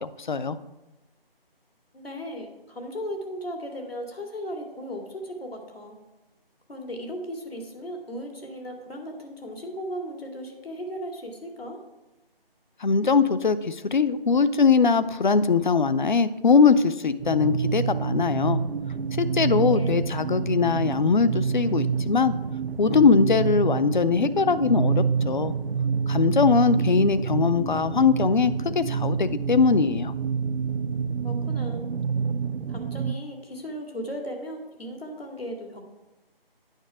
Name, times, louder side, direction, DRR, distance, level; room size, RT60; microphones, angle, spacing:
voice 1, 0.0-0.6 12.8-18.6 19.2-22.3 22.8-25.5 26.1-30.1, left 5 dB, 55° left, 14 dB, 0.5 m, -21 dB
voice 2, 1.9-6.0 6.7-11.8 19.6-20.1 31.2-31.9 32.7-35.8, equal, 80° left, 2 dB, 2.3 m, -36 dB
sound 1, 17.2-33.1, right 6 dB, 90° right, 0.5 m, -28 dB
9.0 x 5.3 x 4.8 m, 1.0 s
figure-of-eight pair, 165°, 30 cm